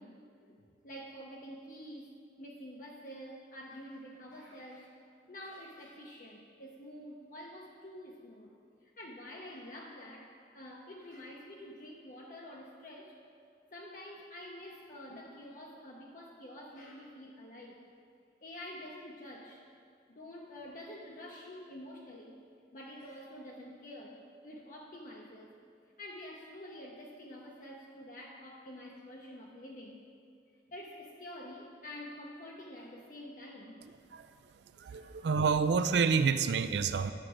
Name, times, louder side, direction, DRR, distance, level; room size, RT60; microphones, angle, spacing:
voice 1, 0.0-2.1 2.4-4.9 5.3-8.5 9.0-13.1 13.7-17.8 18.4-19.6 20.1-22.4 22.7-25.5 26.0-30.0 30.7-33.8 34.8-35.2, left 1 dB, 45° left, -2 dB, 0.8 m, -48 dB
voice 2, 34.8-37.1, right 5 dB, 65° right, 11 dB, 0.4 m, -28 dB
10.0 x 7.2 x 4.9 m, 2.4 s
head